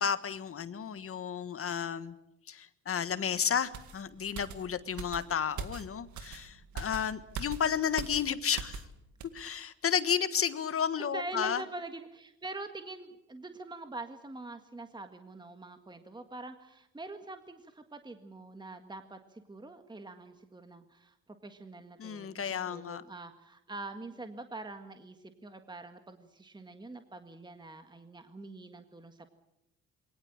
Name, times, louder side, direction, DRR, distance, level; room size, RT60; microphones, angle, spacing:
voice 1, 0.0-2.1 2.5-8.8 9.3-11.6 22.0-23.0, left 7 dB, 45° left, 13 dB, 1.5 m, -32 dB
sound 1, 3.7-8.9 9.2-9.4, right 6 dB, 75° right, 2.0 m, -42 dB
voice 2, 11.0-29.3, right 2 dB, 15° right, 7 dB, 1.7 m, -45 dB
22.0 x 18.5 x 8.8 m, 0.87 s
cardioid pair, 90°, 30 cm